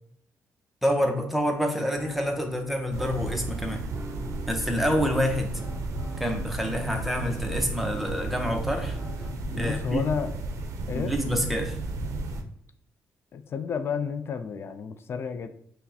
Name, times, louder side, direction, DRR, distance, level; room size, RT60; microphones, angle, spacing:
voice 1, 0.8-3.8 4.5-5.6 6.2-9.0 9.6-10.0 10.9-11.8, equal, ahead, 2 dB, 0.7 m, -27 dB
sound 1, 1.9-9.9, right 1 dB, 20° right, 1.1 m, -42 dB
sound 2, 2.9-12.4, right 2 dB, 75° right, 0.5 m, -33 dB
voice 2, 9.5-10.3 10.9-11.1 13.3-15.5, left 6 dB, 50° left, 9 dB, 0.4 m, -31 dB
5.6 x 2.1 x 2.7 m, 0.71 s
cardioid pair, 95°, 5 cm